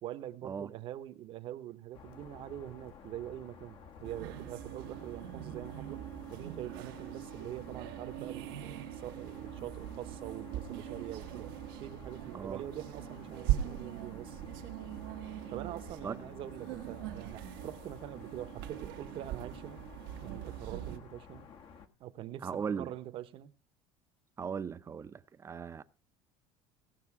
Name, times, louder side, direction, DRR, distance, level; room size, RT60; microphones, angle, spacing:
voice 1, 0.0-6.0 6.3-11.5 11.8-14.4 15.5-19.8 20.2-21.5 22.0-23.5, right 12 dB, 55° right, 1.0 m, -44 dB
sound 1, 1.9-21.9, left 6 dB, 50° left, 1.4 m, -53 dB
sound 2, 4.0-21.0, right 13 dB, 90° right, 1.3 m, -41 dB
voice 2, 12.3-12.6 16.0-16.2 22.4-22.9 24.4-25.8, right 6 dB, 25° right, 0.7 m, -38 dB
17.0 x 6.6 x 4.8 m
cardioid pair, 120°, 11 cm